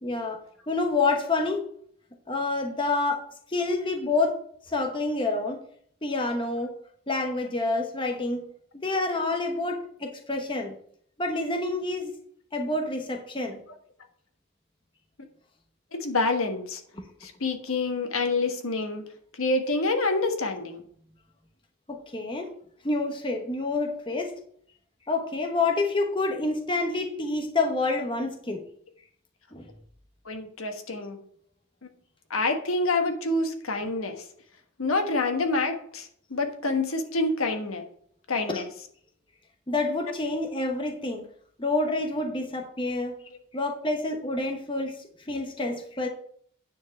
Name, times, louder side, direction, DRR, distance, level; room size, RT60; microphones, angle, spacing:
voice 1, 0.0-1.6 2.3-3.2 3.5-4.4 4.7-5.6 6.0-6.7 7.1-8.4 8.8-10.8 11.2-12.1 12.5-13.6 17.0-17.1 21.9-22.5 22.8-24.3 25.1-28.6 29.5-29.7 38.5-38.6 39.7-41.3 41.6-43.2 43.5-45.0 45.3-46.1, left 3 dB, 20° left, 3 dB, 1.0 m, -28 dB
voice 2, 15.9-16.8 17.2-19.0 19.3-20.8 30.2-31.2 31.8-31.9 32.3-34.2 34.8-37.8 38.3-38.7 43.3-43.4, left 3 dB, 75° left, 5 dB, 1.4 m, -27 dB
9.6 x 4.5 x 7.0 m, 0.62 s
head